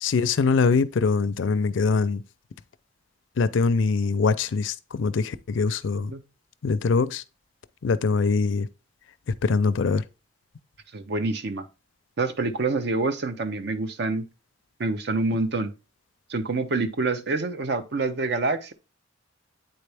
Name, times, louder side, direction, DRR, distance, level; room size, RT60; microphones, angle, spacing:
voice 1, 0.0-2.2 3.4-6.1 6.6-7.2 7.8-8.7 9.4-10.0, left 4 dB, 80° left, 0.5 m, -23 dB
voice 2, 10.9-11.7 12.2-14.2 14.8-15.7 16.3-18.7, right 3 dB, 60° right, 0.7 m, -26 dB
8.8 x 4.2 x 3.4 m
head